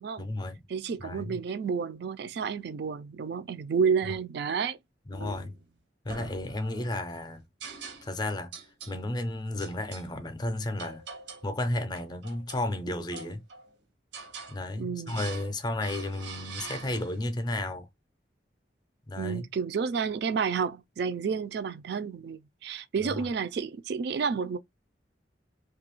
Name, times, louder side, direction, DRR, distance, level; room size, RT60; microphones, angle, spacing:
voice 1, 0.2-0.7 1.0-1.4 4.1-4.2 5.1-5.5 6.0-7.4 8.0-8.5 8.9-11.0 11.4-13.4 14.5-17.9 19.1-19.5 23.0-23.3, left 1 dB, 25° left, 0.4 m, -33 dB
voice 2, 0.7-4.8 14.8-15.2 19.2-24.6, right 6 dB, 65° right, 0.3 m, -30 dB
sound 1, 5.1-5.7 6.1-6.9 7.6-8.2 8.5-9.0 9.6-10.1 10.8-11.5 11.9-12.7 13.1-13.7 14.1-14.6 15.1-15.5 15.8-17.3, right 4 dB, 85° right, 0.7 m, -44 dB
2.6 x 2.3 x 2.9 m
head